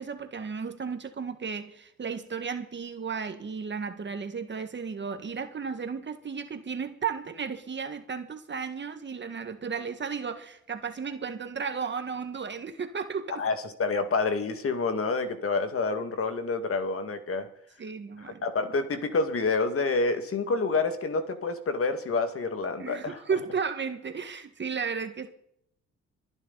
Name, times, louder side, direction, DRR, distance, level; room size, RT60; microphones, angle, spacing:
voice 1, 0.0-13.4 17.8-18.4 22.8-25.3, right 6 dB, 35° right, 1.8 m, -34 dB
voice 2, 13.3-17.5 18.2-23.2, left 3 dB, 50° left, 2.1 m, -28 dB
24.0 x 10.0 x 4.1 m
cardioid pair, 90°, 30 cm